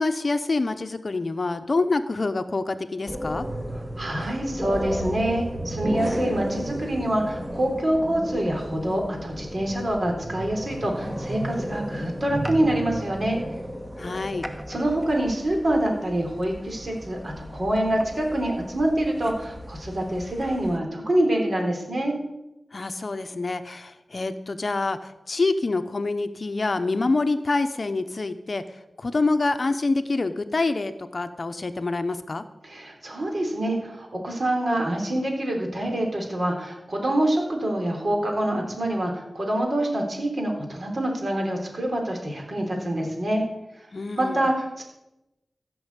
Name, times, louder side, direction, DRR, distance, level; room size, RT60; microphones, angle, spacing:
voice 1, 0.0-3.5 14.0-14.5 22.7-28.6 29.0-32.4 43.9-44.5, left 3 dB, 50° left, 9 dB, 0.8 m, -26 dB
sound 1, 3.1-20.8, equal, 10° right, 1.5 m, -34 dB
voice 2, 4.0-13.4 14.7-22.2 32.6-43.4 44.2-44.8, right 1 dB, 50° right, 1 dB, 3.8 m, -26 dB
15.0 x 6.2 x 8.2 m, 0.92 s
wide cardioid pair, 85°, 0 cm